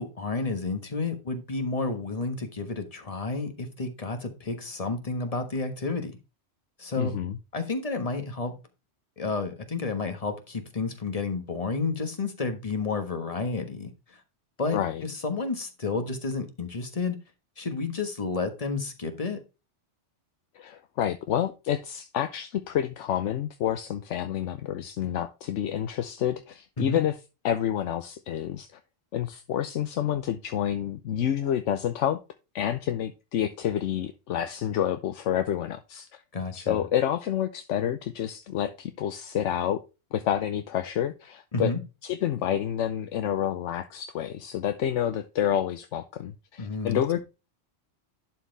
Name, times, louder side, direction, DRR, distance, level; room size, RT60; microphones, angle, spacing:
voice 1, 0.0-6.2 6.8-7.1 7.5-8.5 9.2-14.2 14.6-17.2 17.6-19.4 26.8-27.0 36.3-36.8 41.5-41.8 46.6-47.2, left 3 dB, 30° left, 1.4 m, -31 dB
voice 2, 7.0-7.4 14.7-15.0 20.5-27.2 27.4-28.8 29.1-32.2 32.5-36.2 36.5-39.8 40.1-41.7 42.0-47.2, left 10 dB, 80° left, 1.0 m, -28 dB
11.0 x 4.6 x 3.3 m
omnidirectional pair, 1.2 m